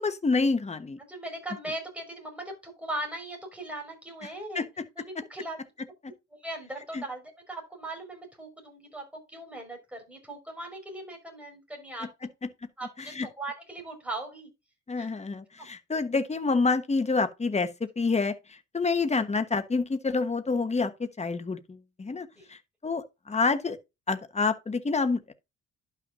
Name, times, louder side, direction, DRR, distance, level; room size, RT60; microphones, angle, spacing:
voice 1, 0.0-1.0 4.5-4.8 6.9-7.0 13.2-13.3 14.9-18.3 18.7-22.6 22.8-23.8 24.1-25.3, left 4 dB, 20° left, 1.2 m, -27 dB
voice 2, 1.1-4.7 4.9-5.6 6.3-12.1 12.8-14.5 15.0-15.1 22.3-22.5, right 1 dB, 5° right, 5.2 m, -39 dB
11.5 x 5.9 x 2.6 m
cardioid pair, 90°, 30 cm